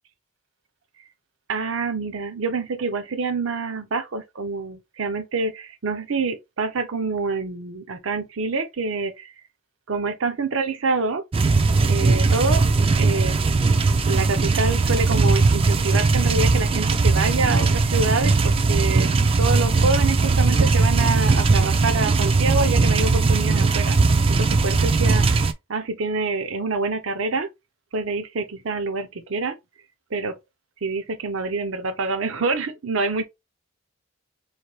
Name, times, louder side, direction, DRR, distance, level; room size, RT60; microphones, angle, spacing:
voice 1, 1.5-9.3 9.9-11.2 11.9-12.6 12.9-13.4 14.1-19.1 19.4-24.0 24.3-25.4 25.7-27.5 27.9-29.6 30.1-30.4 30.8-33.2, right 3 dB, 70° right, 0.6 m, -26 dB
sound 1, 11.3-25.5, right 3 dB, 25° right, 0.3 m, -19 dB
4.3 x 2.6 x 3.1 m
head